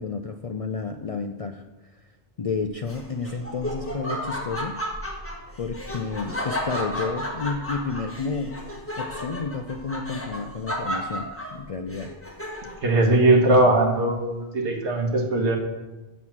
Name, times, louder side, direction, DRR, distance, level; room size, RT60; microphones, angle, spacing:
voice 1, 0.0-2.0 2.4-4.8 5.6-8.6 9.0-12.1, left 4 dB, 55° left, 6 dB, 0.4 m, -31 dB
Laughter, 2.8-12.9, equal, 10° left, 1.4 m, -33 dB
voice 2, 12.8-15.6, right 2 dB, 80° right, 1 dB, 1.8 m, -20 dB
8.1 x 6.1 x 7.2 m, 1.1 s
omnidirectional pair, 1.1 m